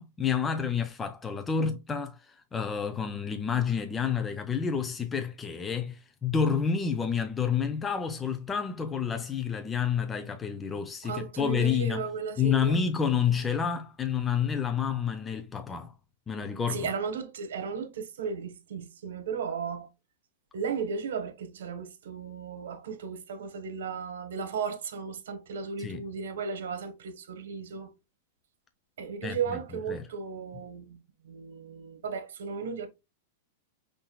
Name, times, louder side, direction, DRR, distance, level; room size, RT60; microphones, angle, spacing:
voice 1, 0.0-12.1 12.4-15.9 16.3-16.9 25.8-26.0 29.2-29.4 29.9-30.1, left 7 dB, 15° left, 0.4 m, -29 dB
voice 2, 11.0-12.8 16.7-19.9 20.5-27.9 29.0-31.0 31.2-32.9, right 6 dB, 80° right, 1.1 m, -35 dB
5.6 x 2.6 x 2.2 m
supercardioid pair, 150°, 0 cm